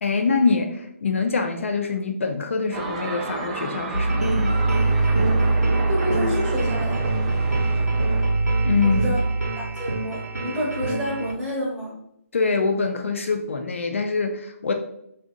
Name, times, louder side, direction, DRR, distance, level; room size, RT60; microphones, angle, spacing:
voice 1, 0.0-4.6 8.6-9.0 12.3-14.7, left 4 dB, 55° left, 4 dB, 0.4 m, -24 dB
sound 1, 2.7-8.3, right 4 dB, 30° right, 0.3 m, -32 dB
sound 2, 3.9-11.3, right 3 dB, 90° right, 0.7 m, -23 dB
voice 2, 5.9-7.0 8.8-9.2 9.6-11.9, equal, 10° right, -5 dB, 0.7 m, -28 dB
2.6 x 2.1 x 3.6 m, 0.76 s
figure-of-eight pair, 150°, 8 cm